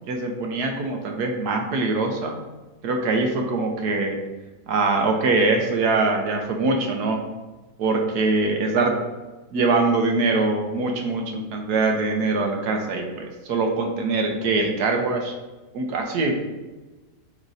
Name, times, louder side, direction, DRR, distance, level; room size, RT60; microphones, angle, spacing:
voice 1, 0.1-2.4 2.8-4.2 4.7-7.2 7.8-9.0 9.5-15.4 15.7-16.4, right 3 dB, 75° right, 3 dB, 1.4 m, -23 dB
8.1 x 4.3 x 2.7 m, 1.2 s
omnidirectional pair, 1.7 m